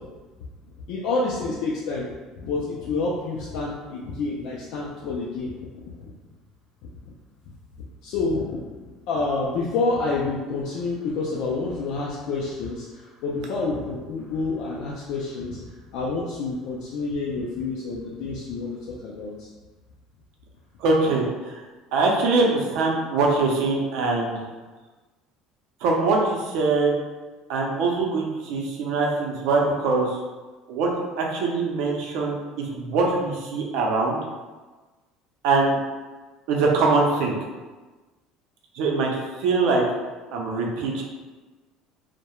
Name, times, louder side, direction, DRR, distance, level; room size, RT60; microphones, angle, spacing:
voice 1, 0.9-5.7 8.0-8.7 9.1-15.6 15.9-19.5, left 3 dB, 65° left, -4 dB, 0.4 m, -28 dB
voice 2, 20.8-21.2 21.9-24.5 25.8-26.9 27.5-30.1 30.7-34.2 35.4-35.8 36.5-37.4 38.7-39.1 39.4-39.8 40.3-41.0, right 3 dB, 75° right, -1 dB, 0.5 m, -23 dB
2.2 x 2.1 x 2.9 m, 1.3 s
cardioid pair, 140°, 0 cm